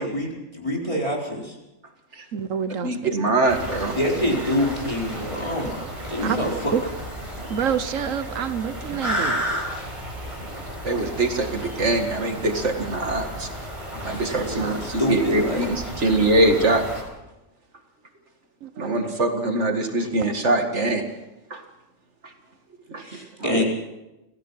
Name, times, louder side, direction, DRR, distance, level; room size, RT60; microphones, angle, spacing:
voice 1, 0.0-1.5 4.0-6.7 14.1-15.7 23.0-23.6, left 1 dB, 25° left, 4.7 m, -26 dB
voice 2, 2.3-3.1 6.2-6.4 6.7-6.8 7.5-9.4 18.6-19.0, right 8 dB, 80° right, 1.3 m, -27 dB
voice 3, 2.8-4.0 10.8-13.5 14.0-16.8 18.8-21.0 21.5-21.6 22.9-23.0 23.4-23.6, right 2 dB, 60° right, 2.4 m, -23 dB
sound 1, 3.5-17.0, equal, 25° right, 6.4 m, -33 dB
27.0 x 17.0 x 5.7 m
omnidirectional pair, 1.3 m